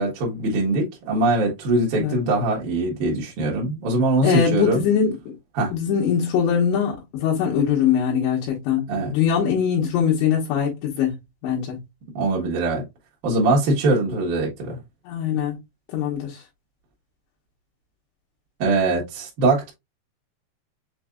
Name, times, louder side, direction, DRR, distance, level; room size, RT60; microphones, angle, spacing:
voice 1, 0.0-4.8 5.6-5.7 8.9-9.1 12.1-12.8 13.2-14.8 18.6-19.7, right 2 dB, 60° right, 2.2 m, -22 dB
voice 2, 4.2-5.1 5.7-11.1 11.4-11.8 15.1-15.6 15.9-16.4, left 8 dB, 80° left, 3.3 m, -22 dB
7.0 x 2.6 x 2.3 m
omnidirectional pair, 5.2 m